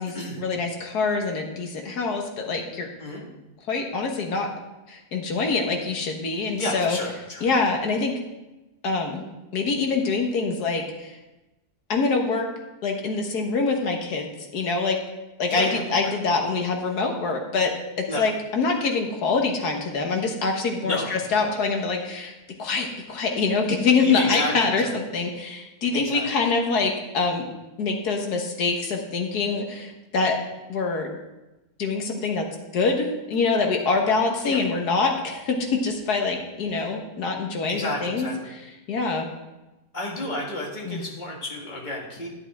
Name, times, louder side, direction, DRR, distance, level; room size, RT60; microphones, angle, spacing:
voice 1, 0.0-2.9 3.7-4.5 4.9-7.0 7.4-8.1 8.8-9.2 9.5-11.2 11.9-12.5 12.8-15.0 15.4-22.3 22.6-27.5 27.8-30.4 30.7-31.1 31.8-32.5 32.7-38.6 38.9-39.3 40.8-41.0, left 4 dB, 85° left, 3 dB, 1.8 m, -25 dB
voice 2, 6.6-7.5 15.5-16.2 18.1-18.2 20.8-21.4 24.0-24.9 25.9-26.3 34.4-34.6 37.7-38.5 39.9-42.3, left 1 dB, 30° left, -3 dB, 2.0 m, -31 dB
11.0 x 9.0 x 3.6 m, 1.0 s
omnidirectional pair, 1.6 m